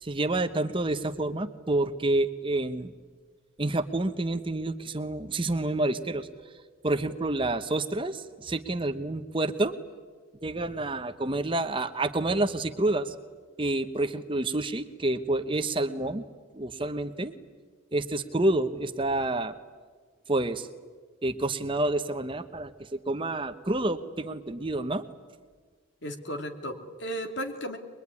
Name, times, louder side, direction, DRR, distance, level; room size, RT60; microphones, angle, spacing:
voice 1, 0.0-2.9 3.6-9.7 10.4-13.1 13.6-16.2 16.5-17.3 17.9-19.5 20.3-20.7 21.2-25.0, right 2 dB, 25° right, 9 dB, 0.9 m, -28 dB
voice 2, 26.0-27.8, equal, 60° left, 5 dB, 2.8 m, -35 dB
22.5 x 22.5 x 9.7 m, 1.5 s
head